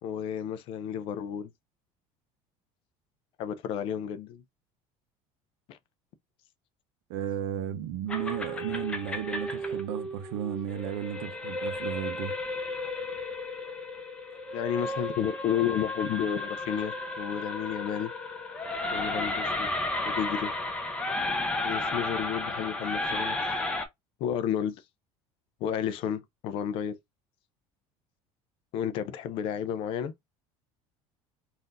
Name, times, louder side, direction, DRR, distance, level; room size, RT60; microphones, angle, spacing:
voice 1, 0.0-1.5 3.4-4.4 5.7-5.8 14.5-18.1 18.9-19.7 20.0-20.5 21.6-23.4 24.2-24.7 25.6-27.0 28.7-30.1, left 9 dB, 45° left, 0.5 m, -31 dB
voice 2, 7.1-12.3, right 10 dB, 75° right, 0.8 m, -34 dB
sound 1, 8.1-23.9, left 2 dB, 10° left, 0.7 m, -33 dB
4.1 x 2.6 x 3.8 m
cardioid pair, 175°, 13 cm